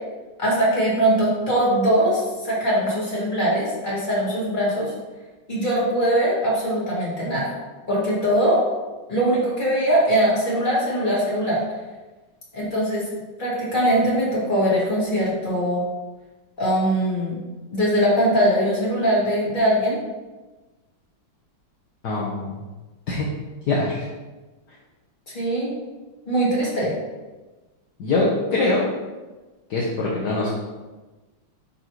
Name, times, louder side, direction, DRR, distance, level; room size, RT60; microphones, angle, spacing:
voice 1, 0.4-4.9 5.5-7.5 7.9-8.6 9.1-11.6 12.5-13.0 13.4-15.8 16.6-17.4 17.7-20.0 25.3-25.7 26.3-26.9, right 1 dB, 25° left, -7 dB, 2.4 m, -21 dB
voice 2, 22.0-22.6 23.1-23.3 23.7-24.0 28.0-28.3 28.5-28.8 29.7-30.5, left 3 dB, 60° left, -4 dB, 1.5 m, -23 dB
10.5 x 4.3 x 3.1 m, 1.2 s
omnidirectional pair, 2.2 m